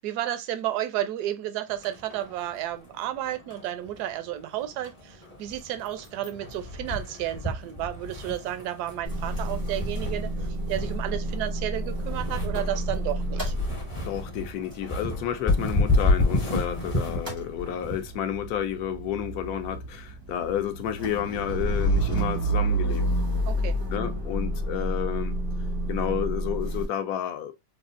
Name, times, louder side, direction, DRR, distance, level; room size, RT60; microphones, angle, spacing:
voice 1, 0.0-10.3 10.7-13.5 23.5-24.1, right 12 dB, 75° right, 1.1 m, -32 dB
sound 1, 1.7-18.2, left 2 dB, 25° left, 0.7 m, -31 dB
Motor vehicle (road) / Engine starting / Idling, 9.0-16.8 17.0-26.9, right 1 dB, 20° right, 0.5 m, -30 dB
voice 2, 14.0-23.0 23.9-25.4 25.9-27.5, left 10 dB, 70° left, 1.0 m, -31 dB
4.2 x 2.4 x 2.5 m
omnidirectional pair, 1.8 m